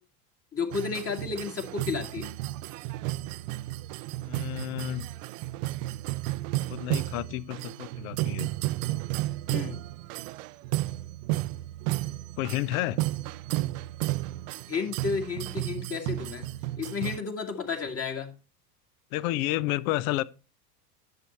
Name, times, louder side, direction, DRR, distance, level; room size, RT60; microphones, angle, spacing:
voice 1, 0.5-2.3 9.5-9.8 14.7-16.5 16.8-18.4, left 5 dB, 30° left, 2.1 m, -32 dB
sound 1, 0.7-17.2, right 17 dB, 55° right, 0.5 m, -33 dB
voice 2, 4.2-5.0 6.7-8.5 12.4-13.0 19.1-20.2, left 17 dB, 55° left, 0.7 m, -30 dB
10.5 x 6.5 x 4.3 m
hypercardioid pair, 95°, 49 cm